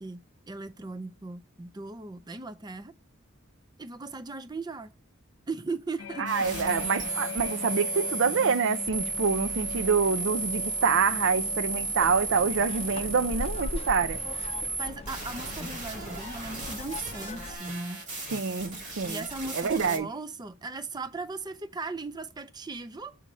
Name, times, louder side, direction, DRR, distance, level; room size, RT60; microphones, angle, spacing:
voice 1, 0.0-2.9 3.8-4.9 5.5-6.3 14.8-18.0 19.0-23.2, right 3 dB, 20° right, 0.5 m, -38 dB
sound 1, 6.0-19.5 19.8-20.1, left 6 dB, 65° left, 0.8 m, -44 dB
voice 2, 6.2-14.2 18.3-19.2 19.5-20.1, right 5 dB, 65° right, 0.5 m, -26 dB
sound 2, 6.3-20.0, right 4 dB, 40° right, 2.1 m, -34 dB
sound 3, 12.0-17.6, left 2 dB, 30° left, 0.6 m, -39 dB
6.8 x 5.0 x 4.2 m
head